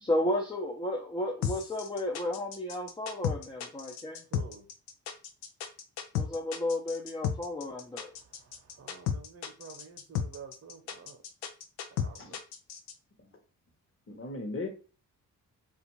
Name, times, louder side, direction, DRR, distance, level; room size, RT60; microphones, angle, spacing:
voice 1, 0.0-4.2 6.1-8.1, left 1 dB, 10° left, 0 dB, 0.5 m, -33 dB
sound 1, 1.4-12.9, left 8 dB, 85° left, 0.5 m, -34 dB
voice 2, 4.3-4.7 8.1-11.2 11.9-12.4, right 6 dB, 40° right, 4 dB, 0.9 m, -50 dB
voice 3, 14.1-14.7, left 2 dB, 35° left, 3 dB, 1.0 m, -37 dB
2.5 x 2.5 x 3.0 m, 0.36 s
supercardioid pair, 45°, 39 cm